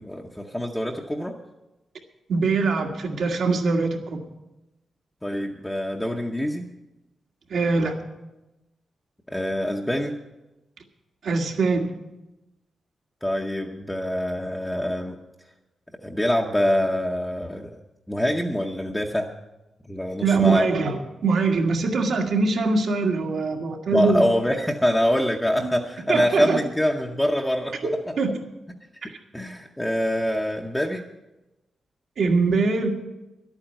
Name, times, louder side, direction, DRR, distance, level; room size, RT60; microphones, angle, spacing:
voice 1, 0.0-1.4 5.2-6.6 9.3-10.2 13.2-15.2 16.0-17.8 18.1-19.3 19.9-20.7 23.9-27.8 28.9-29.1 29.3-31.0, equal, 5° left, 0 dB, 0.8 m, -25 dB
voice 2, 2.3-4.2 7.5-8.0 11.2-11.9 20.2-24.2 25.6-25.7 26.1-26.6 27.8-28.4 29.1-29.2 32.2-32.9, right 4 dB, 65° right, 2 dB, 1.7 m, -23 dB
11.5 x 8.9 x 9.0 m, 1.0 s
wide cardioid pair, 160°, 0 cm